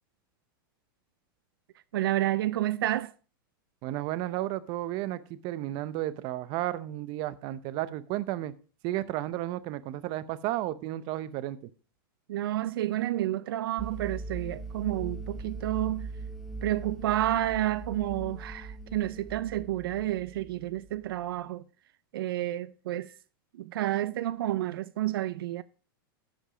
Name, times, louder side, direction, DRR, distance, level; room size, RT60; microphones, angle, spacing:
voice 1, 1.9-3.1 12.3-16.1 16.6-21.6 22.1-23.1 23.6-25.6, right 14 dB, 80° right, 0.5 m, -30 dB
voice 2, 3.8-8.5 8.8-11.6, right 15 dB, 40° right, 0.7 m, -33 dB
sound 1, 13.8-21.2, right 3 dB, ahead, 1.1 m, -40 dB
11.5 x 5.3 x 4.9 m
supercardioid pair, 145°, 12 cm